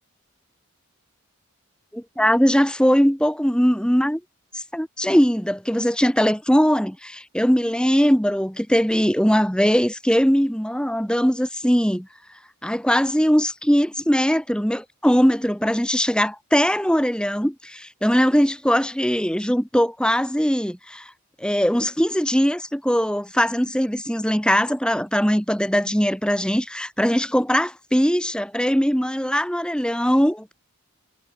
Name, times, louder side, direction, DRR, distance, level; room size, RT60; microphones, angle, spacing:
voice 1, 1.9-4.2 4.5-12.1 12.6-21.1 21.4-30.5, equal, 5° left, 2.7 m, -20 dB
head